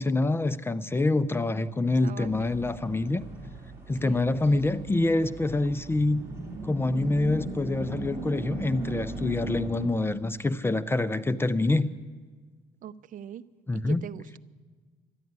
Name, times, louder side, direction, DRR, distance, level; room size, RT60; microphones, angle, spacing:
voice 1, 0.0-3.2 3.9-6.2 6.6-11.9 13.7-14.0, left 2 dB, 15° left, 14 dB, 0.5 m, -26 dB
sound 1, 2.2-9.9, right 3 dB, 15° right, 3.3 m, -38 dB
voice 2, 12.8-13.4 13.7-14.4, right 10 dB, 50° right, 16 dB, 0.5 m, -41 dB
12.5 x 10.5 x 9.3 m, 1.4 s
cardioid pair, 110°, 17 cm